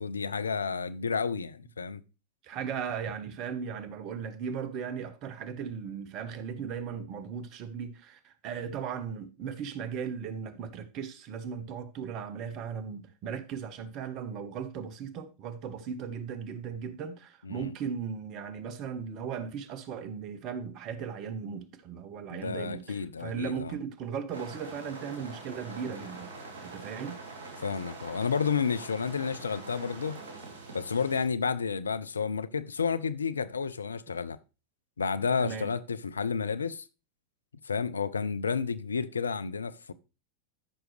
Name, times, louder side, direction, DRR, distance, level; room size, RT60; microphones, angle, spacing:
voice 1, 0.0-2.0 17.4-17.7 22.3-23.8 27.6-30.2 30.7-34.4 35.0-36.8 37.6-39.9, left 5 dB, 80° left, 0.5 m, -31 dB
voice 2, 2.4-26.3 26.6-27.2 35.4-35.7, right 7 dB, 45° right, 1.1 m, -37 dB
sound 1, 24.3-31.3, right 3 dB, 70° right, 2.9 m, -44 dB
13.0 x 6.2 x 3.2 m
figure-of-eight pair, 85°, 0 cm